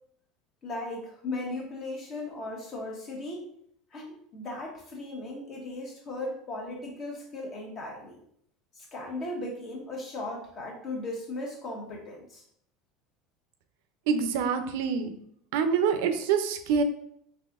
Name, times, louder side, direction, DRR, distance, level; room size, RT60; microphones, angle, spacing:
voice 1, 0.6-3.5 3.9-8.2 8.7-12.4, left 2 dB, 45° left, 0 dB, 1.1 m, -37 dB
voice 2, 14.1-15.1 15.5-16.8, right 6 dB, 75° right, 8 dB, 0.4 m, -26 dB
4.0 x 2.8 x 2.3 m, 0.67 s
hypercardioid pair, 90°, 0 cm